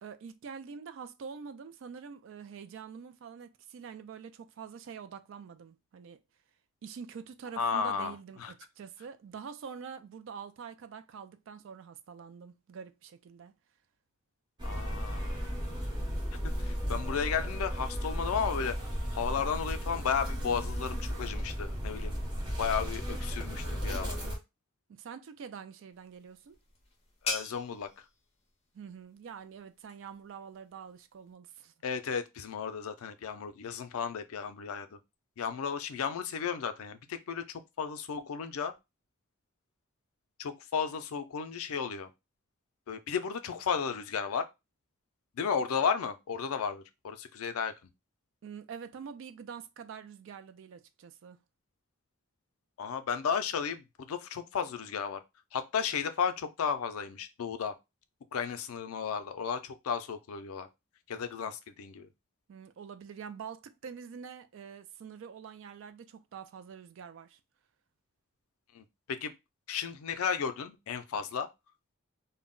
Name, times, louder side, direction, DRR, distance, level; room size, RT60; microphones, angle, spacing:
voice 1, 0.0-6.2 6.8-13.5 24.9-26.6 28.7-31.7 48.4-51.4 62.5-67.4, right 6 dB, 60° right, 0.3 m, -46 dB
voice 2, 7.6-8.1 8.4-8.5 14.6-15.5 16.4-18.8 19.1-22.2 22.6-24.2 27.2-27.9 31.8-35.0 35.4-37.4 37.8-38.7 40.4-42.1 42.9-44.4 45.4-47.7 52.8-55.2 55.5-57.7 58.3-60.7 61.1-62.1 68.7-69.3 69.7-71.5, left 6 dB, 80° left, 0.4 m, -34 dB
sound 1, 14.6-24.4, equal, 20° right, 0.7 m, -35 dB
sound 2, 25.9-31.3, left 3 dB, 30° left, 0.6 m, -43 dB
2.2 x 2.0 x 3.6 m
head